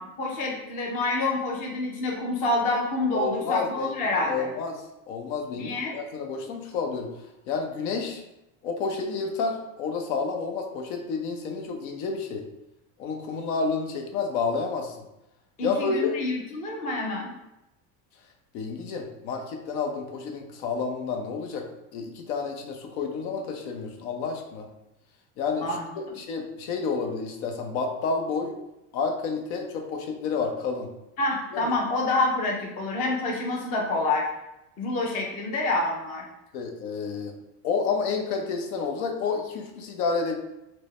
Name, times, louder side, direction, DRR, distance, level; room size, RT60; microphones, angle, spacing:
voice 1, 0.0-4.5 5.6-5.9 15.6-17.3 25.6-25.9 31.2-34.2 34.8-36.2, left 2 dB, 20° left, -1 dB, 0.3 m, -27 dB
voice 2, 3.1-7.1 7.5-8.2 8.6-12.4 13.0-15.0 15.6-16.2 18.5-21.7 21.9-24.7 25.4-25.8 26.2-28.5 28.9-30.9 31.5-31.6 36.5-37.3 37.6-40.4, left 4 dB, 90° left, 3 dB, 0.8 m, -30 dB
4.5 x 2.1 x 3.1 m, 0.92 s
cardioid pair, 160°, 42 cm